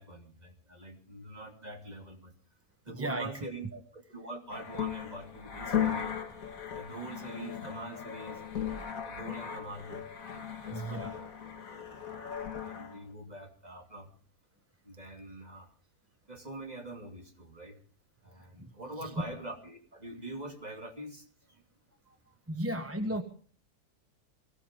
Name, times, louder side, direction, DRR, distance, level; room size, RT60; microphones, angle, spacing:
voice 1, 0.0-2.3 2.8-3.7 3.9-6.1 6.7-8.4 9.0-11.1 11.7-14.1 14.8-15.7 16.3-17.8 18.2-21.6 22.1-22.2, right 2 dB, 25° right, 4 dB, 2.9 m, -45 dB
voice 2, 2.9-3.8 10.7-11.2 18.6-18.7 19.0-19.1 22.5-23.2, right 1 dB, 10° right, 7 dB, 1.0 m, -35 dB
sound 1, 4.5-13.0, left 8 dB, 65° left, 2.2 m, -37 dB
23.0 x 16.5 x 3.7 m, 0.43 s
omnidirectional pair, 1.6 m